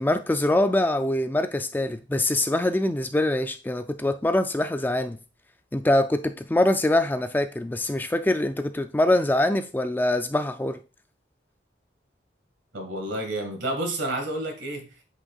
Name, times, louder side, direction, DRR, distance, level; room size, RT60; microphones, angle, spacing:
voice 1, 0.0-5.2 5.7-10.8, left 1 dB, 10° left, 0.3 m, -24 dB
voice 2, 12.7-15.0, right 1 dB, 85° right, 1.9 m, -30 dB
8.5 x 5.3 x 2.4 m
head